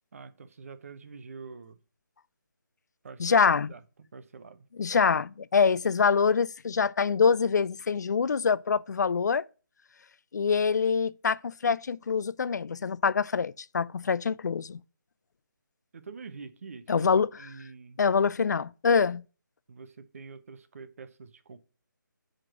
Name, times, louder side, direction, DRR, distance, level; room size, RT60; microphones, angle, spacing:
voice 1, 0.1-1.8 3.0-3.8 4.1-4.6 15.9-17.1 17.4-18.0 19.7-21.6, right 4 dB, 45° right, 0.7 m, -46 dB
voice 2, 3.2-3.7 4.8-9.5 10.3-14.8 16.9-17.5 18.0-19.2, left 5 dB, 55° left, 0.4 m, -25 dB
5.9 x 5.0 x 6.2 m
hypercardioid pair, 165°, 11 cm